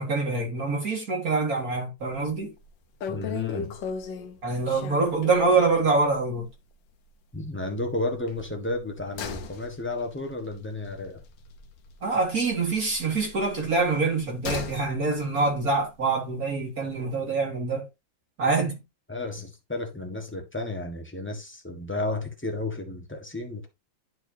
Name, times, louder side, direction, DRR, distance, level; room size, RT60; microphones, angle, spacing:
voice 1, 0.0-2.5 4.4-6.5 12.0-17.9 18.4-18.8, right 3 dB, 50° right, 2.3 m, -25 dB
sound 1, 2.1-2.4 2.6-2.7 3.0-5.7 6.1-6.2 6.5-6.6 8.3-12.2 12.5-14.9 15.2-15.3, left 6 dB, 70° left, 1.6 m, -37 dB
voice 2, 3.1-3.7 7.3-11.2 19.1-23.7, left 2 dB, 5° left, 1.1 m, -32 dB
11.5 x 4.5 x 2.8 m
omnidirectional pair, 2.1 m